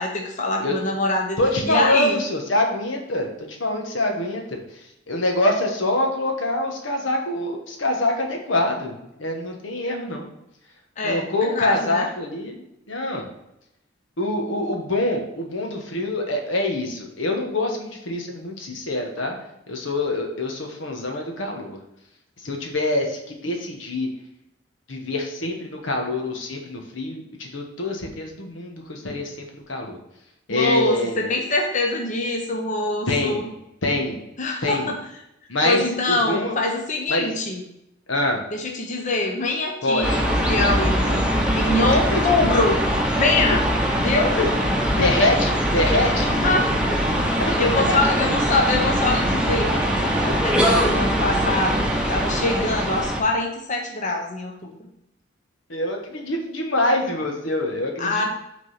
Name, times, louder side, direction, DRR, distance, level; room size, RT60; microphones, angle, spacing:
voice 1, 0.0-1.4 1.6-2.2 11.0-12.1 30.5-33.5 34.4-35.0 35.6-37.6 38.5-41.3 41.5-42.8 43.1-43.6 44.0-44.4 46.4-46.7 47.6-51.7 52.1-54.7 58.0-58.2, left 2 dB, 40° left, 1 dB, 0.8 m, -24 dB
voice 2, 1.4-4.6 5.1-10.3 11.0-13.3 14.2-19.4 19.7-21.8 22.4-24.1 24.9-30.0 30.5-31.3 33.1-33.4 33.8-34.2 34.6-34.9 35.5-35.8 36.1-36.6 37.1-37.3 38.1-38.4 39.8-40.2 41.8-42.2 44.4-44.5 45.0-46.4 47.5-47.6 47.9-48.1 50.3-50.4 55.7-58.2, left 1 dB, 90° left, 2 dB, 1.3 m, -25 dB
sound 1, 40.0-53.2, equal, 5° right, 0.9 m, -22 dB
6.1 x 3.8 x 5.6 m, 0.83 s
head